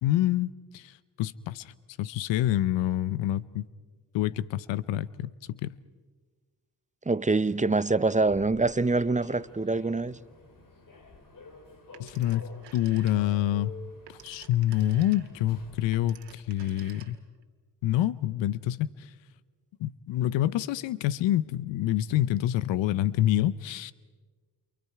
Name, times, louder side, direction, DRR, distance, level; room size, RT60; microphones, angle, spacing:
voice 1, 0.0-1.7 2.0-3.7 4.1-5.8 12.0-13.7 14.1-17.2 17.8-19.1 19.8-23.9, left 13 dB, 85° left, 0.8 m, -27 dB
voice 2, 7.1-10.2, right 3 dB, 15° right, 0.8 m, -25 dB
Human voice / Subway metro underground, 7.9-15.9, left 4 dB, 45° left, 3.4 m, -50 dB
Telephone, 11.9-13.5 13.8-17.4, right 10 dB, 75° right, 2.0 m, -52 dB
29.5 x 28.0 x 4.8 m
supercardioid pair, 55°, 43 cm